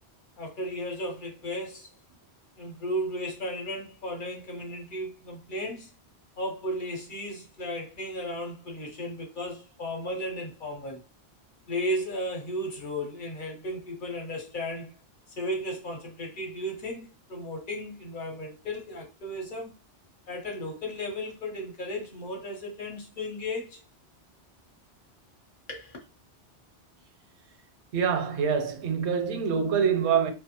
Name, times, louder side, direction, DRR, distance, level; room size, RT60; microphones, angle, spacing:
voice 1, 0.4-1.9 2.6-5.9 6.4-11.0 11.7-14.9 15.4-19.7 20.3-23.8 25.7-26.0, equal, 55° left, 0.8 m, -35 dB
voice 2, 27.9-30.3, right 7 dB, 85° right, 0.9 m, -25 dB
2.4 x 2.1 x 2.8 m
omnidirectional pair, 1.1 m